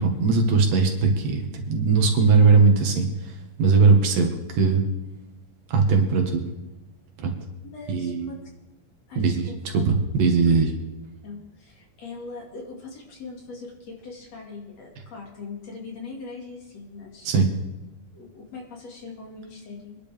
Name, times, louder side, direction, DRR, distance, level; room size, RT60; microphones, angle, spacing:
voice 1, 0.0-4.8 5.7-6.4 7.2-7.3 7.9-8.3 9.2-10.7 17.2-17.5, right 4 dB, 70° right, 3 dB, 3.3 m, -20 dB
voice 2, 7.6-8.3 9.1-9.8 10.5-10.6 11.2-17.3 18.1-20.0, left 4 dB, 50° left, 0 dB, 3.1 m, -41 dB
24.5 x 11.0 x 3.5 m, 1.0 s
omnidirectional pair, 4.1 m